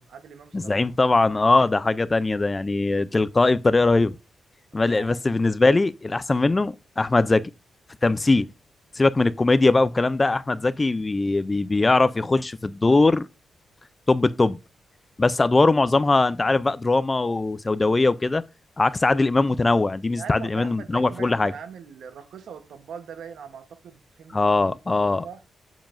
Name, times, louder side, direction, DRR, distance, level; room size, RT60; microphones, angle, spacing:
voice 1, 0.0-0.8 4.8-5.2 20.1-25.4, right 7 dB, 80° right, 0.9 m, -42 dB
voice 2, 0.5-4.2 4.7-7.5 8.0-8.5 9.0-13.3 14.1-14.6 15.2-18.4 18.8-21.5 24.3-25.2, left 3 dB, 20° left, 0.3 m, -21 dB
7.4 x 7.0 x 2.5 m
wide cardioid pair, 155°, 0 cm